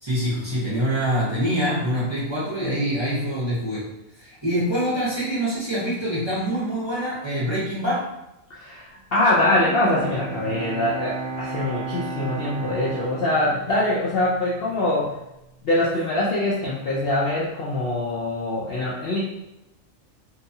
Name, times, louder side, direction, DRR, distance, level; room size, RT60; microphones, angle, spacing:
voice 1, 0.0-3.8 4.2-8.0, equal, 25° right, -9 dB, 0.7 m, -25 dB
voice 2, 8.6-15.1 15.6-19.2, left 1 dB, 60° left, -6 dB, 0.6 m, -23 dB
Bowed string instrument, 9.2-15.2, right 3 dB, 65° right, 0.8 m, -34 dB
2.8 x 2.2 x 2.6 m, 0.90 s
omnidirectional pair, 1.4 m